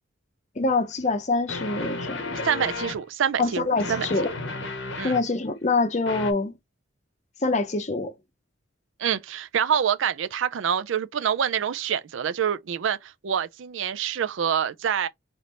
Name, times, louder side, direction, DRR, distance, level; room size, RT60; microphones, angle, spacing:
voice 1, 0.6-2.5 3.4-4.3 5.0-6.5 7.4-8.1, left 3 dB, 35° left, 0.6 m, -25 dB
sound 1, 0.7-0.8 1.5-3.0 3.8-5.3 6.1-6.3, left 3 dB, 65° left, 0.8 m, -33 dB
voice 2, 2.4-4.1 5.0-5.2 9.0-15.1, right 8 dB, 70° right, 0.4 m, -26 dB
3.4 x 2.5 x 4.1 m
head